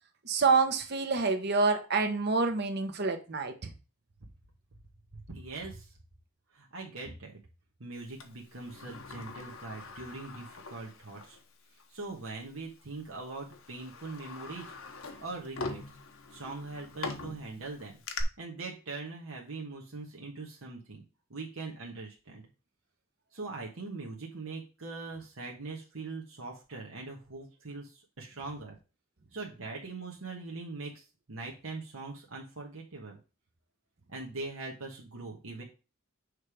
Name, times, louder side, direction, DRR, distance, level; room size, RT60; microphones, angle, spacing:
voice 1, 0.2-3.7, right 4 dB, 55° right, 6 dB, 1.0 m, -27 dB
voice 2, 5.1-5.9 6.5-7.4 7.8-11.4 11.9-14.7 15.2-15.8 16.3-17.9 18.4-21.0 21.3-22.4 23.3-28.8 29.3-33.2 34.1-35.6, right 3 dB, 85° right, -1 dB, 1.4 m, -42 dB
Sliding door, 8.2-11.4 11.8-11.9 12.8-13.0 13.5-18.2, left 3 dB, 80° left, 0.9 m, -43 dB
6.5 x 3.3 x 5.0 m, 0.32 s
head